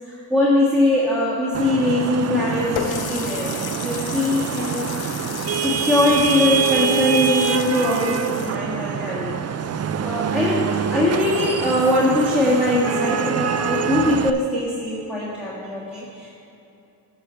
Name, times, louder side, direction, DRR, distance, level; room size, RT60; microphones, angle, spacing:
voice 1, 0.0-9.4 10.0-16.3, left 1 dB, ahead, -8 dB, 1.7 m, -22 dB
Vehicle horn car horn honking / Traffic noise roadway noise, 1.5-14.3, right 8 dB, 40° right, 0.4 m, -25 dB
Water tap faucet, 2.8-8.5, left 10 dB, 70° left, 0.5 m, -33 dB
11.0 x 6.6 x 4.4 m, 2.9 s
cardioid pair, 70°, 39 cm